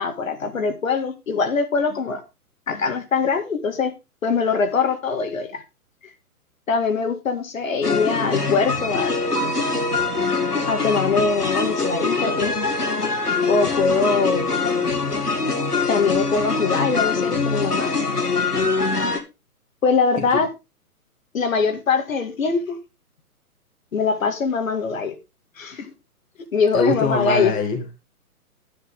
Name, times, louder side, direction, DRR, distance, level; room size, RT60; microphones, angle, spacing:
voice 1, 0.0-2.2 2.7-3.9 4.2-5.6 6.7-9.1 10.7-12.5 13.5-14.5 15.9-17.9 19.8-20.5 21.3-22.8 23.9-25.1 25.6-25.9 26.5-27.5, left 5 dB, 60° left, 2.1 m, -22 dB
sound 1, 7.8-19.2, left 4 dB, 90° left, 2.2 m, -23 dB
sound 2, 9.4-12.1, right 17 dB, 35° right, 2.7 m, -35 dB
voice 2, 26.7-28.0, left 4 dB, 20° left, 1.7 m, -23 dB
10.0 x 9.8 x 3.6 m
figure-of-eight pair, 125°, 45 cm